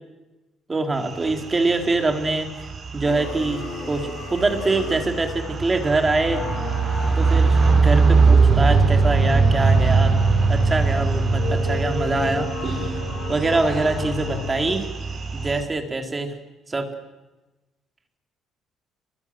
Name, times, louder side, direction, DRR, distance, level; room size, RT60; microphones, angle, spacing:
voice 1, 0.7-2.5 2.9-6.4 7.2-10.2 10.5-12.8 13.3-14.9 15.3-16.3 16.7-16.9, right 3 dB, 20° right, 5 dB, 4.1 m, -24 dB
sound 1, 1.0-15.6, right 4 dB, 40° right, 6.3 m, -22 dB
sound 2, 3.0-5.2, left 5 dB, 85° left, 6.3 m, -36 dB
sound 3, 6.3-14.8, left 4 dB, 65° left, 5.0 m, -30 dB
29.0 x 24.0 x 7.9 m, 1.1 s
cardioid pair, 120°, 0 cm